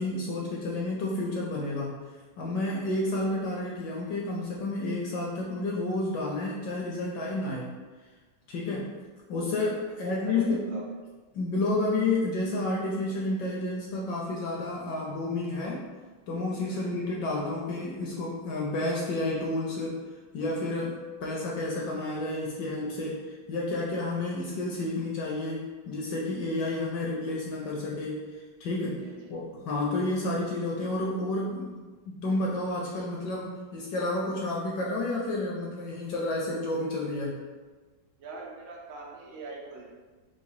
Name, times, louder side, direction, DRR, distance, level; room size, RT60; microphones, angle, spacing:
voice 1, 0.0-2.0 2.4-7.7 8.5-8.9 9.3-10.7 11.3-15.9 16.3-20.0 20.3-29.0 29.3-31.7 32.1-37.4, left 2 dB, 75° left, -3 dB, 1.0 m, -30 dB
voice 2, 9.9-10.9 16.7-17.0 29.0-29.3 38.2-39.9, right 3 dB, 75° right, -2 dB, 1.2 m, -43 dB
4.8 x 2.0 x 2.7 m, 1.3 s
omnidirectional pair, 2.2 m